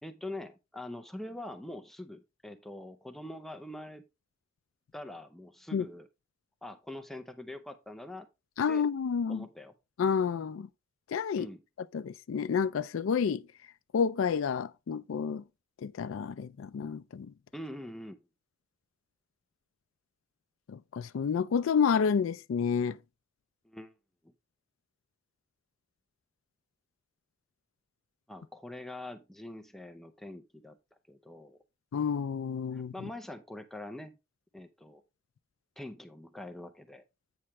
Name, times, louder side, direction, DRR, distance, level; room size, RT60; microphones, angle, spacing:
voice 1, 0.0-4.0 4.9-6.1 6.6-8.3 8.7-8.8 9.3-9.7 11.4-11.6 17.5-18.2 23.6-23.9 24.2-24.3 28.3-30.8 31.1-31.6 32.7-34.2 34.5-35.0 35.8-37.0, left 1 dB, ahead, 0.6 m, -44 dB
voice 2, 8.6-9.5 10.0-10.7 11.1-11.5 11.9-13.4 13.9-15.4 15.8-17.3 20.7-23.0 31.9-32.9, left 6 dB, 80° left, 0.4 m, -29 dB
8.7 x 3.1 x 5.8 m
head